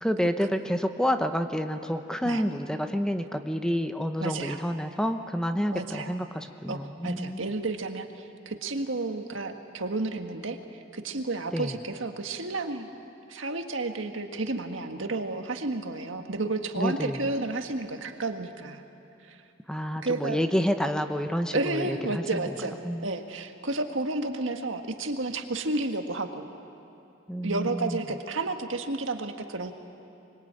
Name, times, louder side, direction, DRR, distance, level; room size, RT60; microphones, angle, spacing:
voice 1, 0.0-7.5 11.5-11.8 16.8-17.3 19.7-23.0 27.3-28.0, equal, 5° left, 7 dB, 0.9 m, -29 dB
voice 2, 4.2-4.6 5.7-6.1 6.7-10.6 10.9-12.9 13.3-18.8 19.2-19.4 20.0-20.4 21.5-26.4 27.4-29.7, right 2 dB, 85° right, 5 dB, 1.7 m, -31 dB
24.5 x 22.0 x 8.9 m, 2.8 s
head